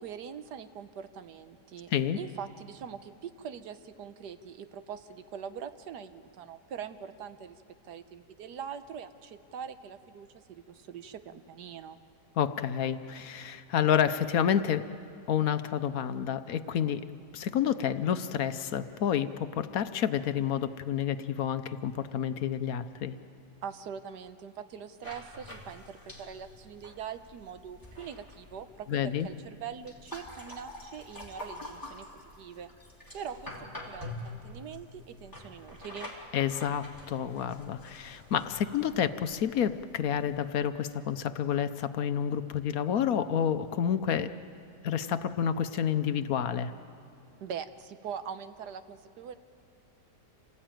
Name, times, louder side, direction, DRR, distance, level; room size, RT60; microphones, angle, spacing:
voice 1, 0.0-12.0 23.6-32.7 33.1-36.1 47.4-49.3, right 7 dB, 75° right, 11 dB, 1.5 m, -43 dB
voice 2, 12.4-14.8 15.3-17.0 17.3-23.2 28.9-29.3 36.3-44.3 44.8-46.7, left 9 dB, 65° left, 11 dB, 1.1 m, -29 dB
sound 1, 25.0-40.7, left 1 dB, 10° left, 3.1 m, -47 dB
27.5 x 18.0 x 9.0 m, 2.4 s
omnidirectional pair, 1.8 m